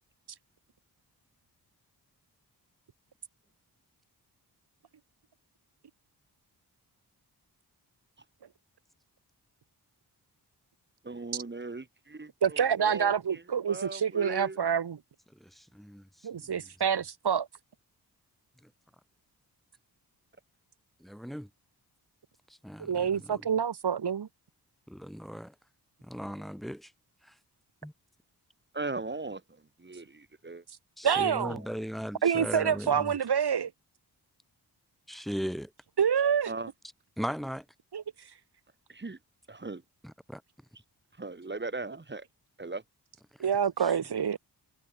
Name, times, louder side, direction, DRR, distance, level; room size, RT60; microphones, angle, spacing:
voice 1, 11.0-14.6 28.7-29.4 29.8-30.0 30.4-30.6 31.1-31.8 36.5-36.7 38.9-39.2 39.5-39.8 41.2-42.2 42.6-42.8, right 3 dB, 25° right, 3.1 m, -38 dB
voice 2, 12.4-15.0 16.2-17.5 22.8-24.3 31.0-31.6 32.2-33.7 36.0-36.5 37.9-38.0 43.4-44.4, right 7 dB, 75° right, 2.7 m, -27 dB
voice 3, 15.4-16.0 21.0-21.5 22.6-23.4 24.9-25.5 26.0-26.9 27.8-27.9 31.0-33.1 35.1-35.7 37.2-37.6 40.0-40.4 43.8-43.9, equal, ahead, 4.5 m, -38 dB
wide cardioid pair, 85°, 40 cm